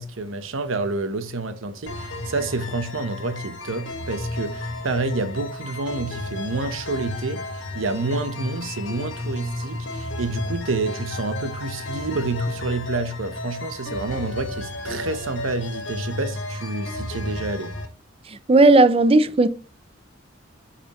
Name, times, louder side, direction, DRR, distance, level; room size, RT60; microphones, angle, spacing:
voice 1, 0.0-17.7, right 3 dB, 80° right, 0.9 m, -28 dB
sound 1, 1.9-17.9, left 2 dB, 70° left, 1.8 m, -33 dB
voice 2, 18.3-19.5, right 2 dB, 30° right, 0.5 m, -15 dB
8.5 x 5.0 x 3.0 m
head